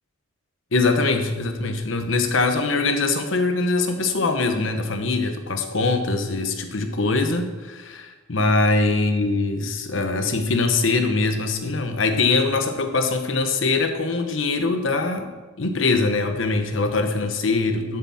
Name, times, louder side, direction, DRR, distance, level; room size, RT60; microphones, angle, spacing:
voice 1, 0.7-15.3 15.6-18.0, left 3 dB, 70° left, 7 dB, 1.1 m, -22 dB
12.0 x 7.5 x 4.2 m, 1.3 s
head